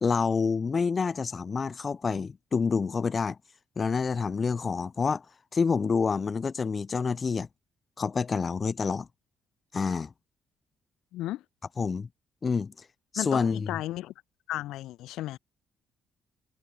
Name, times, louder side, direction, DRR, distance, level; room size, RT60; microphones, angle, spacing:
voice 1, 0.0-3.4 3.8-5.3 5.5-7.5 8.0-9.1 9.7-10.1 11.8-12.1 12.4-12.9 13.1-13.7, left 5 dB, 25° left, 0.5 m, -28 dB
voice 2, 11.1-11.4 13.2-14.1 14.5-15.4, left 15 dB, 90° left, 1.9 m, -34 dB
cardioid pair, 145°, 0 cm